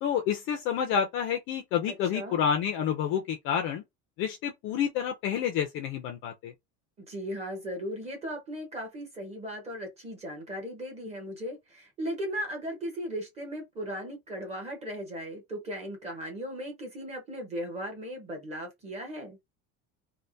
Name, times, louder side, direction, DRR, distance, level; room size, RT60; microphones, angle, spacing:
voice 1, 0.0-3.8 4.2-6.5, left 8 dB, 35° left, 0.4 m, -29 dB
voice 2, 1.9-2.4 7.0-19.4, equal, 20° right, 0.9 m, -37 dB
3.3 x 2.1 x 2.6 m
cardioid pair, 175°, 35 cm